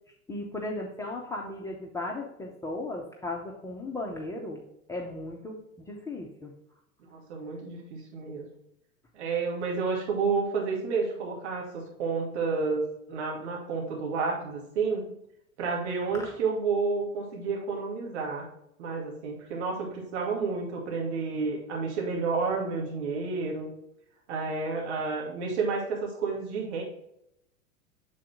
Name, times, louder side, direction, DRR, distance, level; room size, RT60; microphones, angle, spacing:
voice 1, 0.3-4.6 4.9-6.5, left 2 dB, 5° left, -2 dB, 0.6 m, -36 dB
voice 2, 7.1-8.5 9.1-15.1 15.6-18.5 18.8-23.7 24.3-26.8, right 4 dB, 50° right, -1 dB, 2.2 m, -30 dB
7.4 x 4.0 x 3.4 m, 0.78 s
figure-of-eight pair, 90°, 42 cm